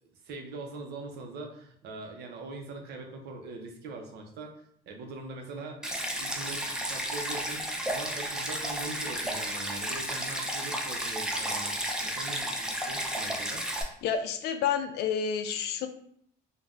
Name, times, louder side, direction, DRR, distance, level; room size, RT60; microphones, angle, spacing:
voice 1, 0.2-4.5 4.9-13.6, right 3 dB, 80° right, 3 dB, 0.6 m, -42 dB
Stream, 5.8-13.8, right 1 dB, 5° right, 0.4 m, -33 dB
voice 2, 14.0-15.9, left 7 dB, 75° left, 7 dB, 0.4 m, -29 dB
3.3 x 2.2 x 2.4 m, 0.67 s
cardioid pair, 110°, 17 cm